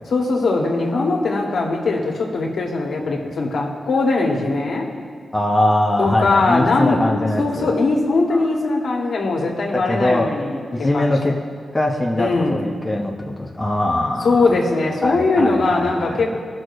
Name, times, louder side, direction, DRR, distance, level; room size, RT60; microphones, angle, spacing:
voice 1, 0.1-4.9 6.0-7.0 7.4-11.4 12.2-12.6 14.2-16.4, left 3 dB, 75° left, -1 dB, 1.5 m, -20 dB
voice 2, 5.3-7.7 8.3-8.4 9.9-10.3 10.7-11.3 11.7-14.5 15.0-16.4, left 1 dB, 15° left, -1 dB, 1.0 m, -21 dB
18.5 x 6.3 x 2.6 m, 2.2 s
cardioid pair, 70°, 0 cm